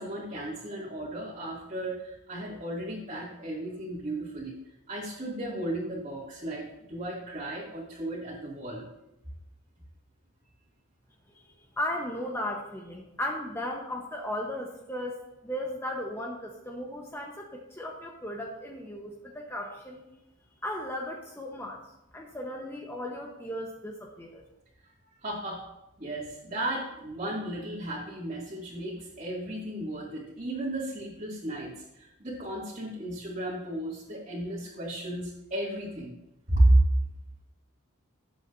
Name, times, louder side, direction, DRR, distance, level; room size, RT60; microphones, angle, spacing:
voice 1, 0.0-4.6 4.9-8.9 25.2-25.6 26.0-36.1 36.5-36.8, right 1 dB, 35° right, -9 dB, 2.4 m, -32 dB
voice 2, 11.8-15.1 15.4-20.0 20.6-21.8 22.1-24.4, left 1 dB, 10° left, -1 dB, 1.0 m, -36 dB
17.5 x 8.2 x 2.7 m, 0.90 s
head